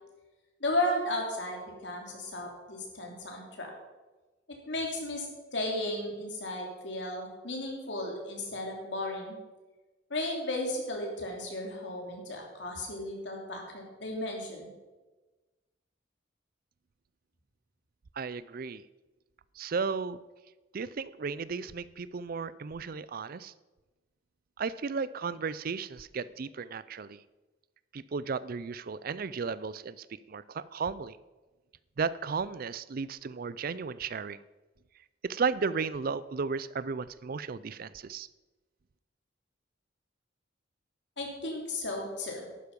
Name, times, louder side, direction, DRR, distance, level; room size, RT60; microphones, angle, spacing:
voice 1, 0.6-3.7 4.7-5.3 5.5-9.4 10.1-14.7 41.2-42.5, left 1 dB, 70° left, 1 dB, 2.9 m, -34 dB
voice 2, 18.2-18.8 19.6-20.2 20.7-23.5 24.6-27.2 27.9-31.2 32.0-34.4 35.2-38.3, right 5 dB, 50° right, 17 dB, 0.5 m, -34 dB
12.0 x 9.4 x 5.3 m, 1.2 s
head